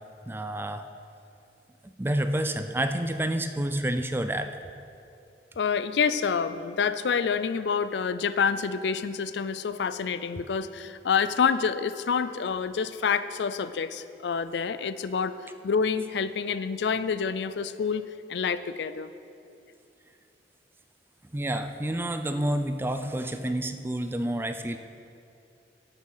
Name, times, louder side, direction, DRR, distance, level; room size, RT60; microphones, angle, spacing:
voice 1, 0.3-0.8 1.8-4.6 21.2-24.8, right 1 dB, 15° right, 8 dB, 0.4 m, -29 dB
voice 2, 5.6-15.4 15.6-19.1, left 6 dB, 70° left, 13 dB, 0.4 m, -27 dB
12.5 x 6.4 x 5.6 m, 2.7 s
head